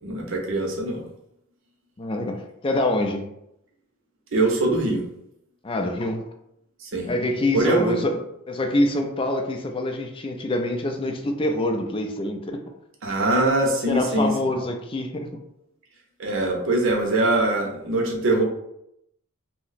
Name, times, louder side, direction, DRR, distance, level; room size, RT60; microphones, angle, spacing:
voice 1, 0.0-1.0 4.3-5.0 6.8-7.1 7.5-8.2 13.0-14.6 16.2-18.4, right 2 dB, 60° right, 0.7 m, -23 dB
voice 2, 2.0-3.3 5.6-6.3 7.1-8.2 8.5-12.6 13.9-15.3, left 1 dB, 25° left, 0.3 m, -25 dB
2.8 x 2.1 x 4.0 m
head